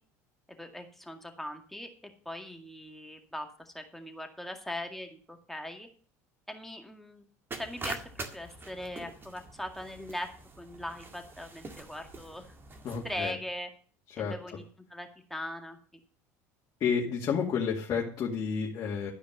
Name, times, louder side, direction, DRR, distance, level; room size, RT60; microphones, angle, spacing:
voice 1, 0.6-1.9 2.3-5.9 6.5-7.2 7.6-10.3 10.6-12.5 13.0-13.7 14.2-14.7 14.9-15.8, left 1 dB, 5° left, 4 dB, 2.1 m, -40 dB
sound 1, 7.5-13.3, right 3 dB, 30° right, 2.0 m, -44 dB
voice 2, 12.8-13.4 14.1-14.3 16.8-19.1, left 6 dB, 50° left, -2 dB, 2.4 m, -30 dB
13.0 x 5.1 x 7.9 m, 0.42 s
hypercardioid pair, 80°, 8 cm